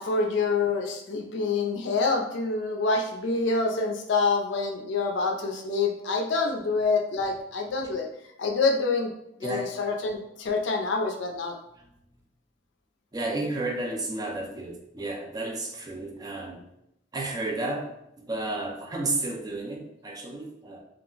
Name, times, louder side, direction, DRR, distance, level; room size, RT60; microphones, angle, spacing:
voice 1, 0.0-8.1 8.4-9.1 9.4-11.5, left 3 dB, 65° left, 0.4 m, -26 dB
voice 2, 9.4-9.8 11.8-11.9 13.1-16.6 17.1-20.8, right 2 dB, 20° right, 0.4 m, -32 dB
2.3 x 2.0 x 3.7 m
head